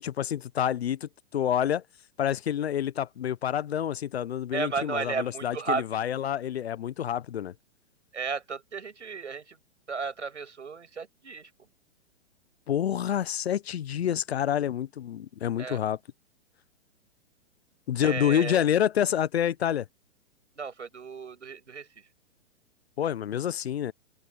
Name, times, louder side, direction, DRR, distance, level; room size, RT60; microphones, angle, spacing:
voice 1, 0.0-1.8 2.2-7.5 12.7-16.0 17.9-19.9 23.0-23.9, left 10 dB, 60° left, 0.9 m, -28 dB
voice 2, 4.5-5.9 8.1-9.6 9.9-11.5 15.6-15.8 18.0-18.6 20.6-21.9, right 5 dB, 75° right, 6.7 m, -34 dB
figure-of-eight pair, 110°, 36 cm